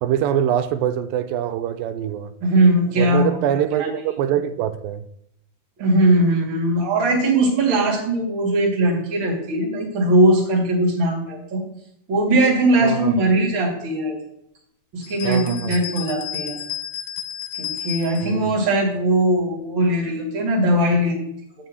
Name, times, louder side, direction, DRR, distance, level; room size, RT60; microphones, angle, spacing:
voice 1, 0.0-2.3 3.0-5.0 12.8-13.1 15.2-15.8 18.2-18.5, right 10 dB, 90° right, 9 dB, 2.4 m, -24 dB
voice 2, 2.4-3.3 3.8-3.9 5.8-11.6 12.1-14.2 14.9-16.6 17.6-21.2, right 1 dB, 40° right, -2 dB, 2.7 m, -19 dB
sound 1, 15.0-18.4, left 10 dB, 80° left, 2.5 m, -32 dB
8.1 x 5.7 x 7.7 m, 0.75 s
omnidirectional pair, 4.0 m